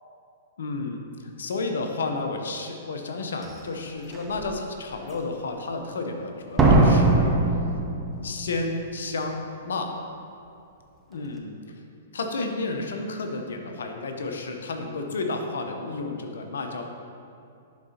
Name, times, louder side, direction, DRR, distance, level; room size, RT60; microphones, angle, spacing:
voice 1, 0.6-7.4 8.2-9.9 11.1-11.8 12.1-16.8, left 3 dB, 75° left, 4 dB, 0.7 m, -31 dB
Slam, 3.4-3.5 4.1-4.5 6.6-8.5 8.7-8.8, right 2 dB, 15° right, 0.7 m, -20 dB
10.5 x 4.0 x 2.8 m, 2.5 s
hypercardioid pair, 115°, 0 cm